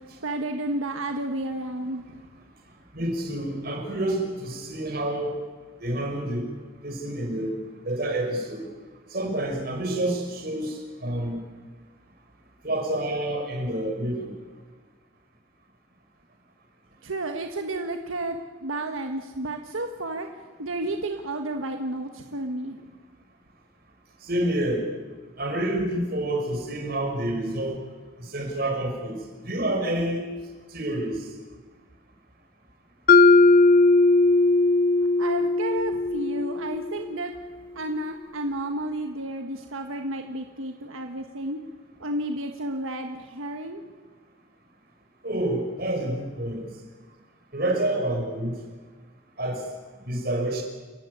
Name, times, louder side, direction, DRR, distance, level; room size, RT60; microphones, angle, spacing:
voice 1, 0.0-2.2 17.0-22.8 35.2-37.3 37.7-41.6 42.0-43.8, right 1 dB, 85° right, 5 dB, 1.5 m, -32 dB
voice 2, 2.9-5.4 5.8-6.5 6.8-7.6 7.9-8.7 9.1-11.4 12.6-14.4 24.2-24.9 25.4-27.8 28.2-30.3 30.7-31.3 45.2-46.7 47.5-48.5 49.4-49.7 50.1-50.6, right 1 dB, 45° right, 3 dB, 5.6 m, -28 dB
Mallet percussion, 33.1-37.1, left 3 dB, 45° left, 0.8 m, -18 dB
29.0 x 15.0 x 9.7 m, 1.4 s
head